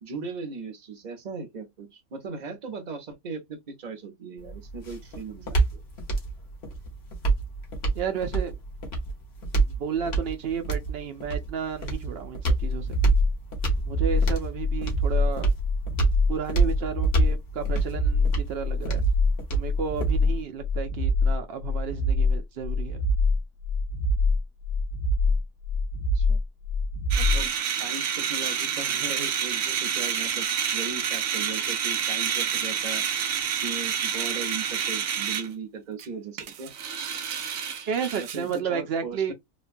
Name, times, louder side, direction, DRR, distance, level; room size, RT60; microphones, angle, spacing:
voice 1, 0.0-5.8 26.1-26.4 27.2-30.5 30.7-33.1 33.6-36.7 38.2-39.3, right 4 dB, 40° right, 0.6 m, -38 dB
sound 1, 4.4-20.4, right 3 dB, 45° left, 1.2 m, -28 dB
voice 2, 7.9-8.6 9.7-13.0 13.9-15.5 16.3-19.0 19.5-23.0 37.9-39.3, right 7 dB, 85° right, 0.5 m, -32 dB
heartbeat regular, 12.5-27.5, left 2 dB, 65° left, 0.8 m, -25 dB
sound 2, 27.1-35.5 36.0-36.1 36.4-38.6, right 8 dB, 70° right, 1.0 m, -28 dB
3.1 x 2.1 x 2.5 m
omnidirectional pair, 1.6 m